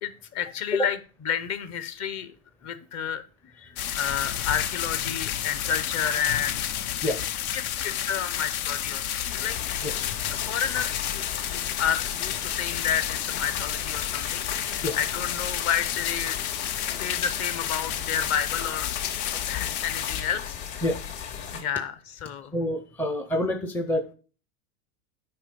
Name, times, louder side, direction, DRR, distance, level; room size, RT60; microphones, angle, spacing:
voice 1, 0.0-2.3 2.6-3.2 3.5-6.6 7.5-9.0 9.4-9.5 10.3-16.4 16.9-18.9 19.5-20.8 21.5-22.5, left 8 dB, 40° left, 12 dB, 1.0 m, -31 dB
sound 1, 3.8-20.2, left 11 dB, 70° left, 0.9 m, -31 dB
sound 2, 9.3-21.6, left 8 dB, 55° left, 2.8 m, -37 dB
voice 2, 22.5-24.1, left 1 dB, 5° left, 6 dB, 0.4 m, -27 dB
8.4 x 5.1 x 5.3 m, 0.38 s
hypercardioid pair, 120°, 44 cm